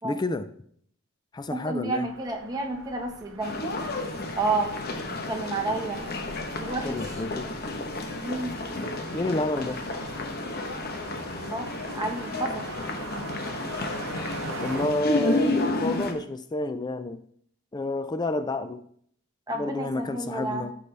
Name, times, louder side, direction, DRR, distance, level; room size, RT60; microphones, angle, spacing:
voice 1, 0.0-0.5 1.3-2.1 6.8-7.5 9.1-9.8 14.6-17.2 17.7-18.9 19.5-20.7, left 2 dB, 20° left, 11 dB, 0.4 m, -29 dB
voice 2, 1.5-3.7 4.4-4.7 5.3-6.0 6.6-7.0 8.2-8.6 11.4-11.7 11.9-12.6 19.5-20.7, right 3 dB, 20° right, 2 dB, 1.2 m, -30 dB
sound 1, 2.0-14.8, right 4 dB, 70° right, 0.7 m, -43 dB
sound 2, 3.4-16.1, left 2 dB, 50° left, 1.0 m, -31 dB
12.5 x 5.4 x 3.4 m, 0.64 s
head